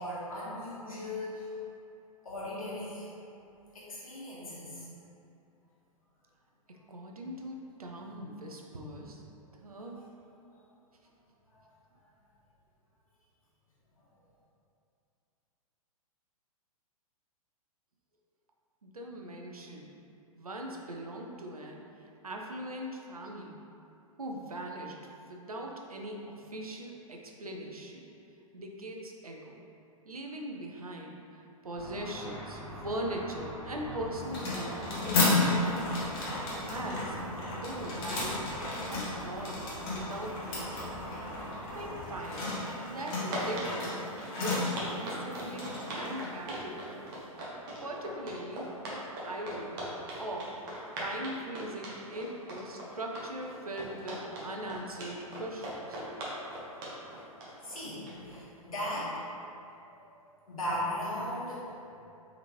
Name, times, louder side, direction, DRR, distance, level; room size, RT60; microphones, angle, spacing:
voice 1, 0.0-1.5 2.2-3.1 3.7-4.9 9.4-9.6 9.9-10.0 10.5-10.6 11.5-11.7 57.6-59.2 59.8-60.0 60.5-61.6, left 1 dB, 70° left, -8 dB, 1.4 m, -37 dB
voice 2, 6.7-9.2 9.6-10.0 18.8-19.9 20.3-23.6 24.2-25.0 25.3-28.1 28.5-29.6 30.1-36.0 36.5-37.2 37.5-38.5 38.9-40.9 41.7-42.5 42.9-43.9 44.3-47.1 47.8-49.8 50.2-50.5 51.0-56.0, right 1 dB, 80° right, 0 dB, 0.6 m, -40 dB
Car / Traffic noise roadway noise / Engine, 31.7-42.3, equal, ahead, 1.3 m, -43 dB
sound 1, 34.2-47.3, left 2 dB, 40° left, 0.9 m, -34 dB
sound 2, 42.8-58.4, right 1 dB, 40° right, 0.9 m, -40 dB
3.5 x 3.5 x 3.0 m, 2.7 s
figure-of-eight pair, 105°, 19 cm